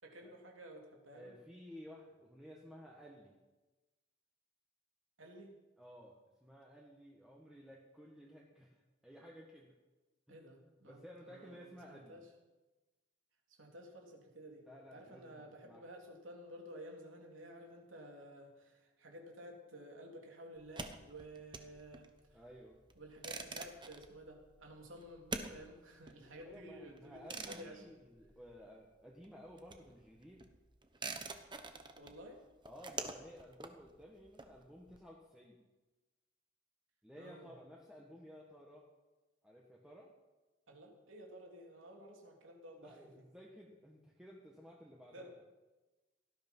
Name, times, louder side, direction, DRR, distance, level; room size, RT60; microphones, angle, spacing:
voice 1, 0.0-1.4 5.2-5.5 10.3-12.3 13.5-14.6 14.9-22.4 22.9-27.8 31.9-32.4 37.2-37.6 40.7-43.1 45.1-45.3, right 1 dB, 85° right, 0 dB, 3.5 m, -53 dB
voice 2, 1.1-3.3 5.8-9.7 10.3-10.4 10.8-12.2 14.6-15.9 22.3-22.8 26.1-30.4 32.6-35.6 37.0-38.9 39.4-40.1 42.8-45.3, equal, 5° right, -3 dB, 1.7 m, -55 dB
sound 1, 20.6-28.9 29.2-35.0, right 3 dB, 25° right, 1.1 m, -47 dB
18.0 x 13.5 x 5.6 m, 1.1 s
head